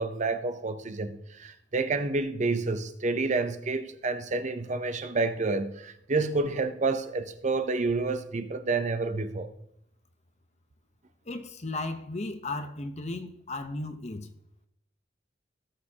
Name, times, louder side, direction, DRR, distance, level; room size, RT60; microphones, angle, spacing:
voice 1, 0.0-9.5, right 3 dB, 40° right, 0.7 m, -29 dB
voice 2, 11.3-14.3, left 2 dB, 35° left, 0.8 m, -35 dB
17.5 x 6.5 x 2.9 m
head